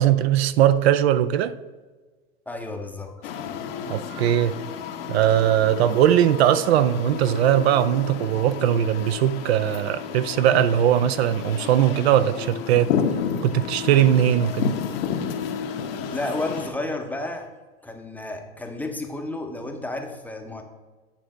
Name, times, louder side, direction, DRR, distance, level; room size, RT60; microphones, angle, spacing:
voice 1, 0.0-1.6 3.9-4.6 5.1-12.9 13.4-14.7, right 11 dB, 80° right, 0.5 m, -20 dB
voice 2, 2.5-3.3 15.9-17.5 17.8-20.6, left 2 dB, 5° left, 0.6 m, -32 dB
sound 1, 3.2-16.7, left 7 dB, 65° left, 0.9 m, -31 dB
8.8 x 3.3 x 5.0 m
hypercardioid pair, 120°, 31 cm